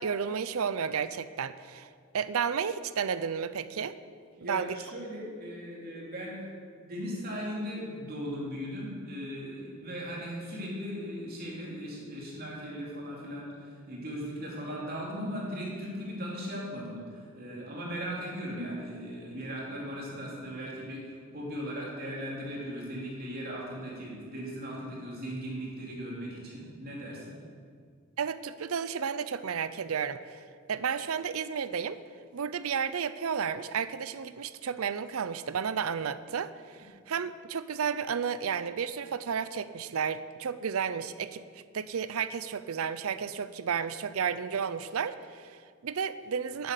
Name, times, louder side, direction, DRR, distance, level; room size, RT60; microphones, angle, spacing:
voice 1, 0.0-4.0 4.5-4.8 28.2-32.0 32.3-41.4 41.7-46.7, right 6 dB, 85° right, 15 dB, 0.5 m, -32 dB
voice 2, 4.4-6.4 6.8-27.4, equal, 45° right, -4 dB, 3.2 m, -38 dB
11.5 x 9.4 x 6.7 m, 2.1 s
head